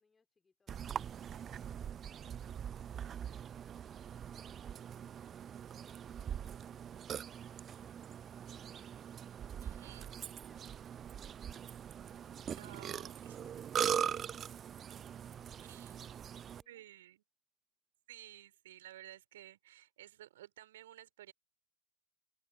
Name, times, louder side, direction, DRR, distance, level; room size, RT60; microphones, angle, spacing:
voice 1, 0.0-2.4 2.7-8.9 9.4-11.7 12.0-16.9, left 4 dB, 15° left, 4.7 m, -72 dB
Burping eructation, 0.7-16.6, right 9 dB, 25° right, 0.5 m, -41 dB
voice 2, 9.6-10.1 12.5-13.4 15.7-16.0 16.7-17.2 18.1-21.3, right 13 dB, 55° right, 3.8 m, -54 dB
open air
figure-of-eight pair, 90°, 0 cm